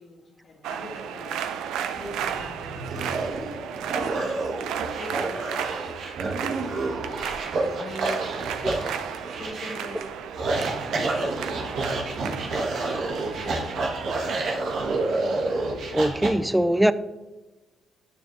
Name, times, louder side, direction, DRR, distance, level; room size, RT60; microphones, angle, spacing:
voice 1, 0.0-3.4 3.9-4.7 5.0-6.6 7.4-10.1 10.5-11.8 12.3-12.5 13.1-13.8, left 1 dB, 50° left, 1.5 m, -42 dB
sound 1, 0.6-16.1, right 8 dB, 90° right, 0.5 m, -34 dB
sound 2, 2.0-16.3, right 2 dB, 70° right, 1.3 m, -29 dB
voice 2, 15.9-16.9, right 1 dB, 5° right, 0.3 m, -21 dB
9.5 x 6.9 x 3.1 m
cardioid pair, 90°, 0 cm